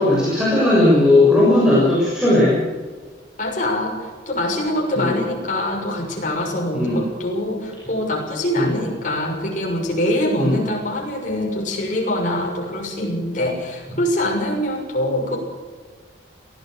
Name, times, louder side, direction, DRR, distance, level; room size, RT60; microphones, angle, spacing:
voice 1, 0.0-2.5 4.9-5.2 6.7-7.0 8.6-8.7 10.4-10.6, left 2 dB, 5° right, -7 dB, 6.6 m, -16 dB
voice 2, 3.4-15.4, left 1 dB, 40° left, -1 dB, 6.5 m, -24 dB
23.5 x 17.0 x 6.7 m, 1.5 s
head